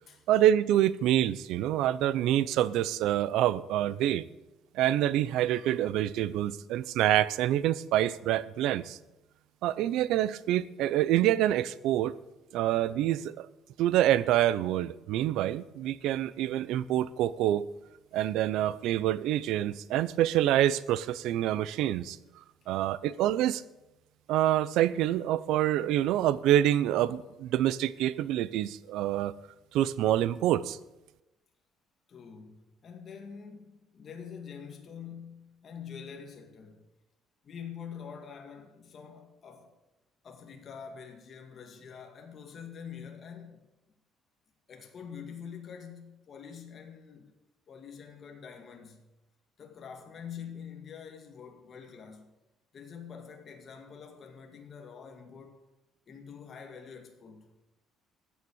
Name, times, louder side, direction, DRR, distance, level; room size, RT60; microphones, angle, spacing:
voice 1, 0.3-4.3 4.7-9.0 9.6-12.1 12.5-13.5 13.8-17.7 18.1-22.2 22.7-23.6 24.3-29.3 29.7-30.8, right 12 dB, 70° right, 0.6 m, -26 dB
voice 2, 32.1-36.8 37.4-39.7 40.2-43.6 44.7-47.3 47.7-49.0 49.6-52.3 52.7-55.6 56.1-57.5, left 7 dB, 35° left, 1.9 m, -46 dB
14.5 x 7.3 x 8.7 m
cardioid pair, 165°, 0 cm